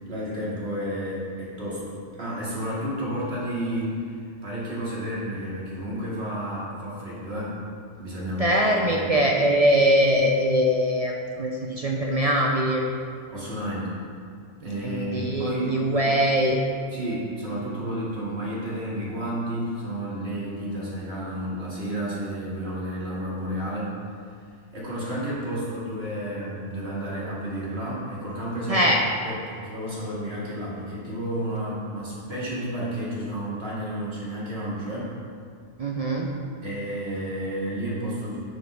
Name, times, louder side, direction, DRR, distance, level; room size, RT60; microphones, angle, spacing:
voice 1, 0.1-7.6 8.0-9.1 13.3-13.9 14.6-16.1 16.9-23.9 24.7-28.9 29.2-35.1 36.6-38.4, right 1 dB, 65° right, -8 dB, 2.6 m, -31 dB
voice 2, 8.4-12.8 14.8-16.6 28.7-29.0 35.8-36.3, equal, 40° right, -1 dB, 0.7 m, -22 dB
8.0 x 5.2 x 6.2 m, 2.2 s
omnidirectional pair, 1.1 m